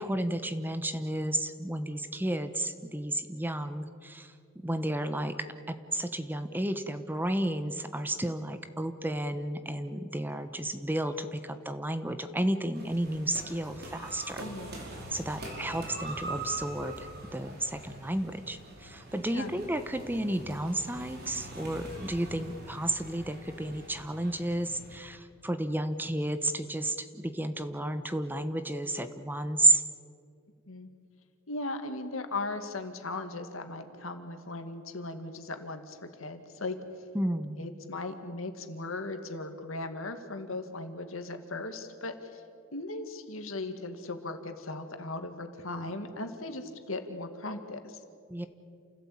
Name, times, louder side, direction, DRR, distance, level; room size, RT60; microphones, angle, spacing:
voice 1, 0.0-4.3 4.6-14.4 15.1-29.8 37.1-37.7 48.3-48.5, right 1 dB, 10° right, 9 dB, 0.9 m, -32 dB
sound 1, 12.7-25.0, right 2 dB, 50° right, 5.1 m, -43 dB
voice 2, 14.4-14.8 19.3-19.5 30.7-30.9 31.5-36.8 37.6-42.4 42.7-48.0, left 2 dB, 75° left, 7 dB, 2.1 m, -38 dB
28.5 x 16.0 x 8.7 m, 2.4 s
head